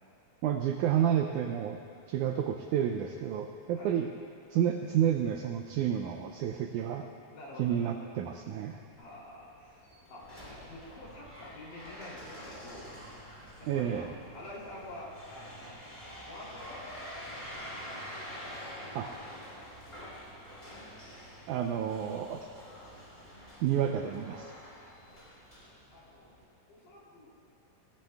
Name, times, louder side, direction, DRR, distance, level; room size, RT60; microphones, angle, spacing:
voice 1, 0.4-1.8 2.1-4.1 4.5-7.1 7.6-8.8 13.7-14.1 18.9-19.1 21.5-22.4 23.6-24.5, right 9 dB, 85° right, 4 dB, 1.7 m, -30 dB
voice 2, 7.3-8.0 9.0-10.3 10.6-13.0 13.6-14.1 14.3-16.0 16.2-16.8 17.7-18.2 18.6-19.6 22.3-22.4 24.8-25.2 25.9-26.3 26.7-27.3, left 1 dB, 65° left, -6 dB, 4.4 m, -48 dB
sound 1, 8.9-26.4, equal, 15° left, 3.5 m, -47 dB
18.5 x 17.5 x 2.3 m, 2.4 s
omnidirectional pair, 4.0 m